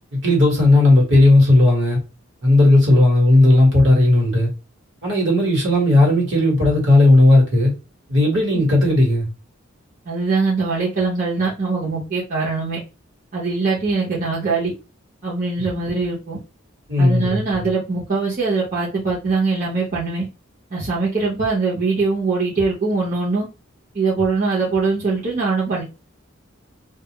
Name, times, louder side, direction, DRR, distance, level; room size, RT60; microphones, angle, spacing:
voice 1, 0.1-2.0 2.4-4.5 5.0-7.7 8.1-9.3 16.9-17.4, left 2 dB, 60° right, 1.2 m, -14 dB
voice 2, 10.1-12.8 13.3-14.7 15.2-16.4 17.0-20.2 20.7-23.5 23.9-25.8, right 4 dB, 40° right, 0.8 m, -22 dB
2.3 x 2.0 x 2.8 m
head